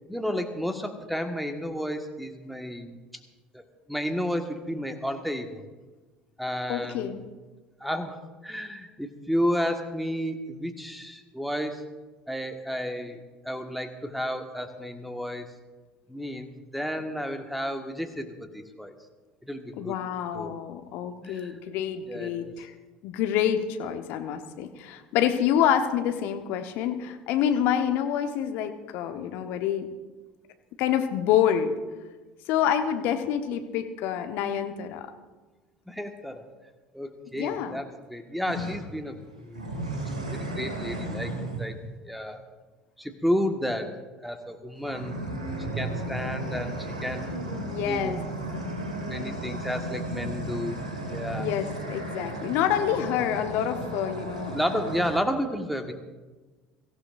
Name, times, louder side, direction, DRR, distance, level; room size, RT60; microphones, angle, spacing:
voice 1, 0.1-3.0 3.5-5.6 6.4-7.2 7.8-8.2 8.4-11.8 12.3-15.4 16.1-18.9 19.4-20.0 20.3-20.6 21.2-21.6 22.0-22.5 35.9-36.5 36.9-39.8 40.3-41.7 42.0-42.4 43.0-43.9 44.2-45.2 45.6-47.3 47.8-48.2 49.0-50.8 51.1-51.5 54.5-55.9, equal, ahead, 6 dB, 1.6 m, -32 dB
voice 2, 6.7-7.2 19.8-22.7 23.0-29.9 30.8-31.7 32.5-35.1 37.3-37.8 47.7-48.2 51.4-54.6, left 9 dB, 55° left, 7 dB, 1.1 m, -27 dB
sound 1, 38.5-38.8 39.5-41.7 44.8-55.2, right 1 dB, 80° right, 2.3 m, -34 dB
23.5 x 15.0 x 2.6 m, 1.3 s
figure-of-eight pair, 65°, 4 cm